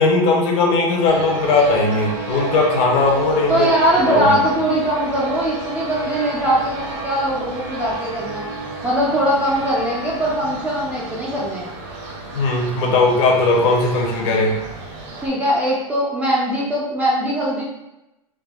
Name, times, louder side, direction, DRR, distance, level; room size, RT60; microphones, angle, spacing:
voice 1, 0.0-3.7 4.0-4.4 12.3-14.5, left 3 dB, 45° left, 1 dB, 0.6 m, -18 dB
sound 1, 1.1-15.3, right 2 dB, 45° right, 0.7 m, -31 dB
voice 2, 3.5-8.5 8.8-11.7 15.2-17.6, right 1 dB, 10° right, -6 dB, 0.3 m, -21 dB
3.4 x 2.0 x 2.3 m, 0.93 s
supercardioid pair, 140°, 19 cm